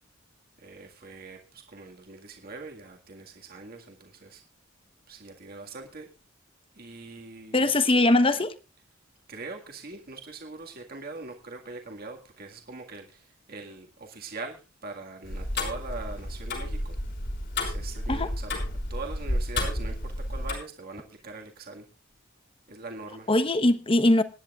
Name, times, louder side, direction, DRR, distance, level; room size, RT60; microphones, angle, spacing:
voice 1, 0.6-4.4 5.1-6.1 6.8-7.7 9.3-17.0 17.6-18.6 18.9-21.9 22.7-23.3, right 3 dB, 50° right, 2 dB, 1.9 m, -42 dB
voice 2, 7.5-8.6 18.1-18.3 23.3-24.2, left 2 dB, 30° left, 12 dB, 1.0 m, -21 dB
Tick-tock, 15.2-20.5, left 1 dB, 65° left, 5.8 m, -31 dB
25.5 x 10.5 x 2.4 m, 0.29 s
head